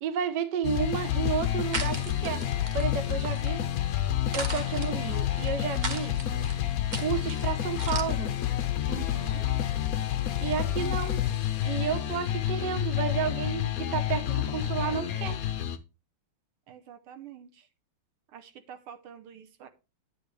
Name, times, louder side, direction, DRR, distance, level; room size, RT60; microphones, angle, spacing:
voice 1, 0.0-2.4 2.7-3.6 4.3-6.2 7.0-8.4 10.4-11.2 11.6-15.4, right 7 dB, 60° right, 1.4 m, -31 dB
sound 1, 0.6-15.8, left 11 dB, 70° left, 0.8 m, -29 dB
sound 2, 1.3-8.0, right 3 dB, 40° right, 0.6 m, -40 dB
voice 2, 8.9-9.5 16.7-17.7 18.3-19.7, right 9 dB, 80° right, 1.8 m, -46 dB
10.5 x 8.0 x 3.2 m
omnidirectional pair, 2.4 m